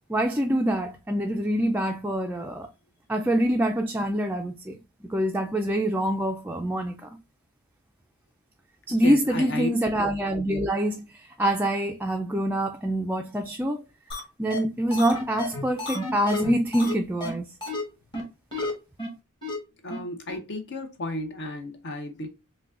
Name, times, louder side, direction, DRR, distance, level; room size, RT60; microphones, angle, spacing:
voice 1, 0.1-2.7 3.1-7.1 8.9-11.1 11.4-13.8 14.4-17.5, right 1 dB, 10° right, 0.3 m, -25 dB
voice 2, 9.0-9.7 19.8-22.3, left 1 dB, 55° left, 0.7 m, -33 dB
sound 1, 14.1-14.2 14.5-14.6 14.9-16.9 17.2-17.3 17.6-17.8 18.1-18.2 18.5-18.7 19.0-19.1 19.4-19.6 19.9-20.0 20.3-20.4, left 2 dB, 20° left, 1.3 m, -31 dB
5.8 x 2.2 x 2.4 m
head